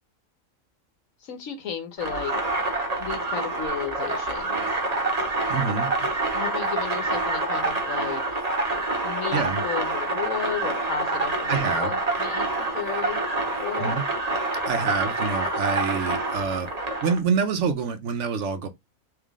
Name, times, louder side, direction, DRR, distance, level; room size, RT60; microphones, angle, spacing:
voice 1, 1.2-2.3 3.0-4.8 6.3-8.2 9.0-13.2 13.6-14.0, left 7 dB, 75° left, 1.4 m, -33 dB
sound 1, 2.0-17.2, right 2 dB, 30° right, 1.0 m, -27 dB
voice 2, 5.5-5.9 9.3-9.6 11.5-11.9 13.8-14.1 14.7-16.7 17.0-18.7, right 5 dB, 65° right, 0.9 m, -26 dB
3.6 x 3.2 x 3.5 m
omnidirectional pair, 1.4 m